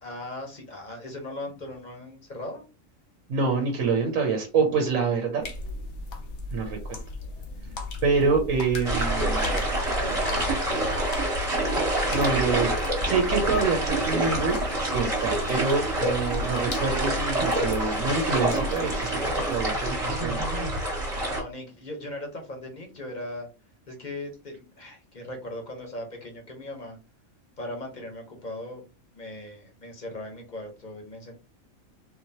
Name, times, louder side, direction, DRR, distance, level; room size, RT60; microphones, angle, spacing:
voice 1, 0.0-2.6 9.3-10.6 21.2-23.5 23.9-27.0 27.6-28.8 29.1-31.3, left 1 dB, 35° left, 3 dB, 1.1 m, -38 dB
voice 2, 3.3-5.5 6.5-7.0 8.0-9.5 12.1-12.7 13.0-20.4, right 4 dB, 70° right, 3 dB, 1.2 m, -26 dB
sound 1, 5.4-19.6, left 3 dB, 60° left, 1.0 m, -38 dB
sound 2, 8.8-21.4, right 1 dB, 25° right, 1.4 m, -27 dB
4.1 x 3.1 x 2.8 m, 0.32 s
omnidirectional pair, 1.5 m